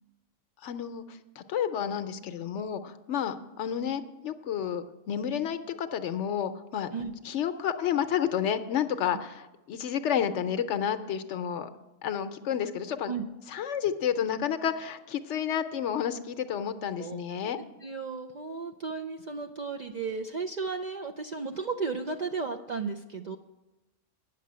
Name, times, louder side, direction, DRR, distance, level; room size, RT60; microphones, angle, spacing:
voice 1, 0.6-6.9 7.2-11.7 12.0-13.1 13.5-17.6, left 9 dB, 70° left, 10 dB, 0.9 m, -30 dB
voice 2, 17.0-17.5 17.8-23.4, right 4 dB, 55° right, 2 dB, 0.5 m, -34 dB
9.4 x 6.5 x 8.5 m, 1.0 s
omnidirectional pair, 1.3 m